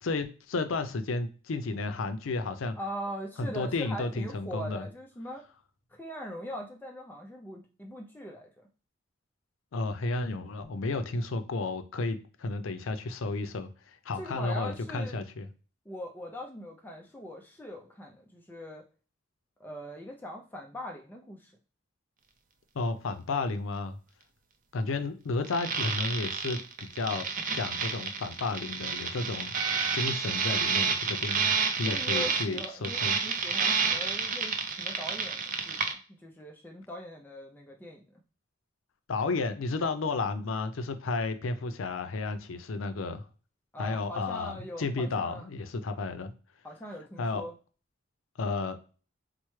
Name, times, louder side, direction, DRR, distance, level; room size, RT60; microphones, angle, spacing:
voice 1, 0.0-2.8 3.4-4.9 9.7-13.7 14.1-15.5 22.7-24.0 24.7-27.3 27.5-29.5 29.9-33.2 39.1-43.2 43.8-46.3 47.2-47.4 48.4-48.8, left 3 dB, 85° left, 0.5 m, -32 dB
voice 2, 2.8-5.4 5.9-8.7 14.1-15.2 15.9-18.8 19.6-21.5 24.8-25.1 31.8-35.8 36.2-38.0 43.7-45.5 46.6-47.5, equal, 10° left, 0.4 m, -41 dB
sound 1, 25.4-35.9, right 5 dB, 45° right, 0.5 m, -30 dB
4.4 x 2.0 x 3.1 m
head